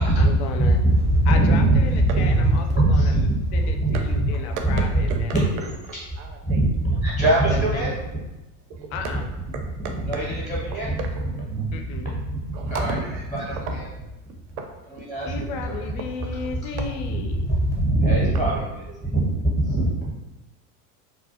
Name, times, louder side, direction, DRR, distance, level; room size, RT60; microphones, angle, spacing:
voice 1, 0.0-0.8 1.3-5.7 7.5-7.9 8.9-9.3 11.7-12.1 15.2-17.5, left 5 dB, 50° left, 4 dB, 0.4 m, -34 dB
voice 2, 0.6-2.4 2.7-4.0 5.3-5.4 6.5-7.9 10.1-11.0 11.5-13.0 15.1-15.7 17.3-20.1, right 1 dB, ahead, -8 dB, 0.6 m, -21 dB
voice 3, 4.5-7.0 8.7-8.9 9.5-9.9 11.0-11.3 12.5-14.0 14.6-15.1 16.4-16.5, right 4 dB, 50° right, 4 dB, 0.5 m, -36 dB
2.3 x 2.1 x 2.7 m, 1.1 s
hypercardioid pair, 90°, 47 cm